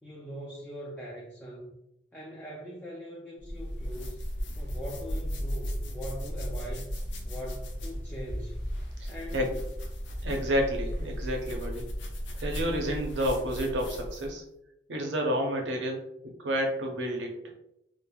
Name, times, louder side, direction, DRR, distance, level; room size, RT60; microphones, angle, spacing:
voice 1, 0.0-1.8 2.1-4.2 4.6-6.9 7.2-8.7 9.1-9.5, equal, 10° left, -5 dB, 0.4 m, -42 dB
sound 1, 3.4-14.4, equal, 85° left, 0.5 m, -35 dB
voice 2, 9.0-9.6 10.2-11.9 12.3-14.4 14.9-16.0 16.4-17.3, equal, 85° right, 2 dB, 0.6 m, -30 dB
3.1 x 2.0 x 2.2 m, 0.81 s
head